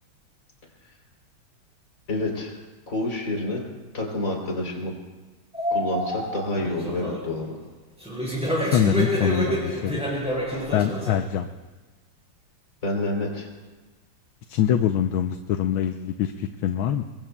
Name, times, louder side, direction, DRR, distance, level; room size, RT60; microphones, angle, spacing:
voice 1, 2.1-2.5 2.9-3.6 3.9-4.9 5.7-7.6 12.8-13.5, left 2 dB, 40° left, 0 dB, 3.7 m, -28 dB
sound 1, 5.5-7.4 8.0-11.2, equal, 5° right, 5.8 m, -28 dB
voice 2, 8.7-10.1 10.7-11.5 14.5-17.0, left 9 dB, 75° left, 7 dB, 1.5 m, -24 dB
28.0 x 22.0 x 2.3 m, 1.2 s
omnidirectional pair, 2.4 m